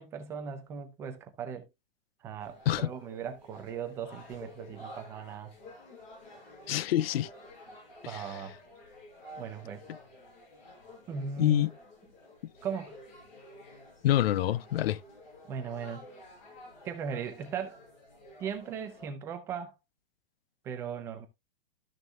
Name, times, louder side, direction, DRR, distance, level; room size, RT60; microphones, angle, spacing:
voice 1, 0.0-1.7 2.2-5.5 8.1-8.6 9.4-9.9 11.1-11.7 12.6-13.0 15.5-16.0 16.8-17.8 18.4-19.7 20.6-21.3, right 6 dB, 10° right, 0.4 m, -38 dB
sound 1, 2.4-19.1, left 1 dB, 50° left, 5.0 m, -51 dB
voice 2, 6.7-7.3 8.0-8.2 11.4-11.7 14.0-15.0, left 13 dB, 85° left, 0.5 m, -26 dB
13.0 x 6.3 x 2.2 m
supercardioid pair, 165°, 29 cm